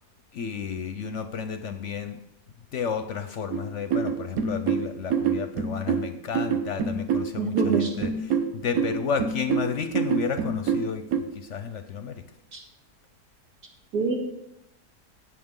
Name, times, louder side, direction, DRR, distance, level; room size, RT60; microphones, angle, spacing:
voice 1, 0.3-2.2 2.7-12.2, left 6 dB, 60° left, 9 dB, 0.8 m, -32 dB
sound 1, 3.5-11.2, right 6 dB, 70° right, 1.2 m, -26 dB
voice 2, 7.4-7.9 12.5-12.6 13.9-14.2, right 4 dB, 85° right, 0 dB, 2.5 m, -25 dB
17.5 x 6.2 x 3.7 m, 0.84 s
omnidirectional pair, 1.7 m